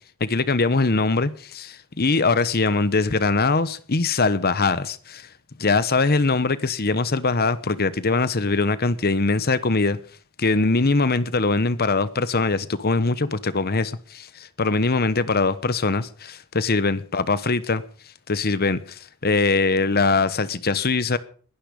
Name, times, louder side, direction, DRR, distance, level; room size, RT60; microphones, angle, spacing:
voice 1, 0.2-5.3 5.6-10.0 10.4-17.8 18.3-21.2, left 3 dB, 45° left, 1.1 m, -22 dB
21.0 x 11.5 x 5.3 m
head